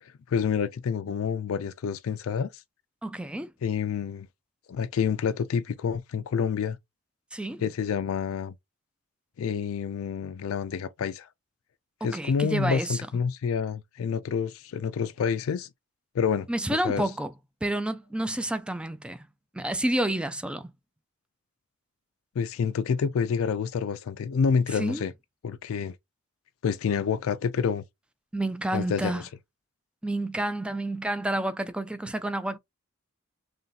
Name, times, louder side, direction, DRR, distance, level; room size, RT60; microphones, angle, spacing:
voice 1, 0.0-2.6 3.6-4.3 4.7-6.8 7.6-8.5 9.4-11.3 12.0-15.7 16.1-17.1 22.4-25.1 25.4-26.0 26.6-27.8 28.7-29.3, left 6 dB, 75° left, 0.3 m, -28 dB
voice 2, 3.0-3.5 7.3-7.6 12.0-13.0 16.5-17.3 17.6-19.3 19.5-20.7 24.7-25.0 28.3-29.3 30.0-32.6, right 1 dB, 5° right, 0.3 m, -29 dB
3.2 x 2.7 x 3.8 m
head